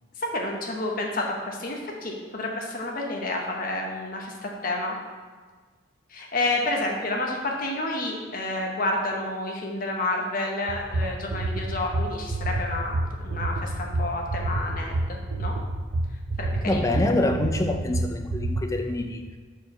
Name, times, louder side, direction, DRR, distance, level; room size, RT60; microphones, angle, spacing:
voice 1, 0.2-5.0 6.1-15.5 16.4-16.9, left 2 dB, 40° left, 0 dB, 0.8 m, -30 dB
sound 1, 10.7-18.6, right 2 dB, 80° right, 0.5 m, -28 dB
voice 2, 16.7-19.3, left 1 dB, 15° left, 5 dB, 0.3 m, -26 dB
4.6 x 4.4 x 5.3 m, 1.5 s
head